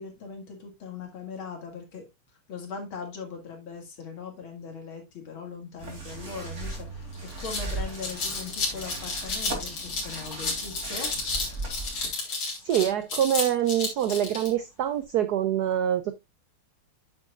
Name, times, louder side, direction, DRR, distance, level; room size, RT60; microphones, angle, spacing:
voice 1, 0.0-2.1 2.5-7.1 7.4-11.7, left 5 dB, 65° left, 2.8 m, -40 dB
sound 1, 5.8-12.1, right 2 dB, 35° right, 3.0 m, -37 dB
sound 2, 6.7-6.8 7.1-14.5, left 3 dB, 85° left, 3.7 m, -32 dB
voice 2, 12.6-16.2, right 10 dB, 80° right, 0.9 m, -25 dB
9.1 x 7.5 x 2.4 m
omnidirectional pair, 2.4 m